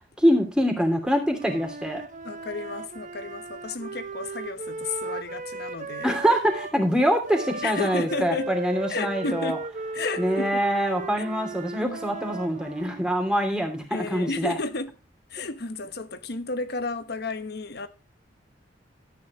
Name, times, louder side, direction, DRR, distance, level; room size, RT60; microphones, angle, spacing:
voice 1, 0.2-2.0 6.0-9.6 10.2-14.6, equal, 5° right, 2.8 m, -24 dB
Wind instrument woodwind instrument, 1.3-6.8 7.2-13.1, right 2 dB, 45° right, 1.1 m, -36 dB
voice 2, 2.2-6.2 7.6-8.5 8.9-9.6 9.9-10.6 11.2-11.3 11.8-12.0 13.9-14.9 15.3-17.9, left 3 dB, 60° left, 1.1 m, -32 dB
13.0 x 9.5 x 3.1 m
head